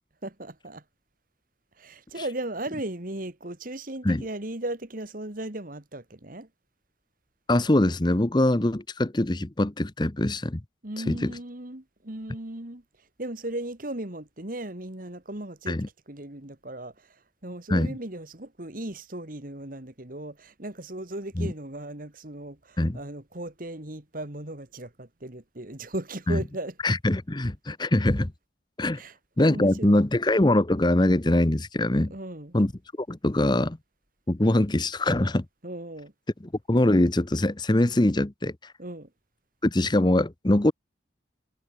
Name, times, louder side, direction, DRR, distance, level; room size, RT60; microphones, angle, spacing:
voice 1, 0.2-0.8 1.8-6.5 10.8-12.8 13.2-15.8 16.1-26.8 28.9-30.0 32.1-32.6 35.6-36.1 38.8-39.1, right 1 dB, 45° right, 2.2 m, -37 dB
voice 2, 7.5-10.6 11.0-11.3 15.7-15.9 17.7-18.0 21.4-21.5 22.8-23.0 26.3-26.4 26.8-28.3 28.8-29.0 29.4-32.1 32.5-32.7 33.0-33.8 34.3-35.4 36.7-38.7 39.6-40.7, left 1 dB, 25° left, 0.9 m, -23 dB
head